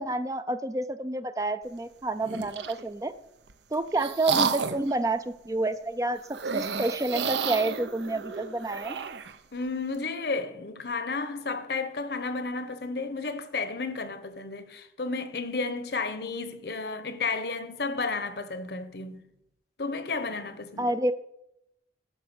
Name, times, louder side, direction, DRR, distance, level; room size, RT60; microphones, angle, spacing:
voice 1, 0.0-3.1 3.7-9.0 20.8-21.1, right 2 dB, 20° right, 0.4 m, -29 dB
sound 1, 2.2-2.8 3.5-4.9 6.3-9.4, right 6 dB, 75° right, 0.8 m, -31 dB
voice 2, 9.5-19.3 19.8-20.9, left 3 dB, 60° left, 1.0 m, -32 dB
12.0 x 5.8 x 7.9 m
head